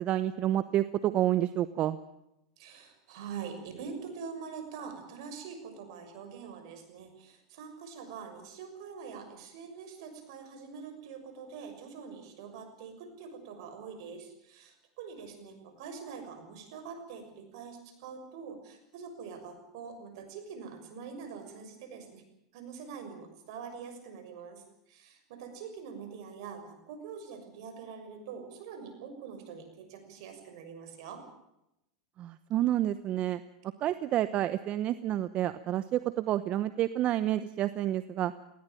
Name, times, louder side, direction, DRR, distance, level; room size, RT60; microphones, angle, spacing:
voice 1, 0.0-2.0 32.2-33.4 33.8-38.3, right 13 dB, 45° right, 14 dB, 0.9 m, -29 dB
voice 2, 2.6-22.2 22.5-31.2, right 6 dB, 65° right, 7 dB, 6.4 m, -44 dB
19.5 x 17.5 x 9.1 m, 0.86 s
hypercardioid pair, 105°, 3 cm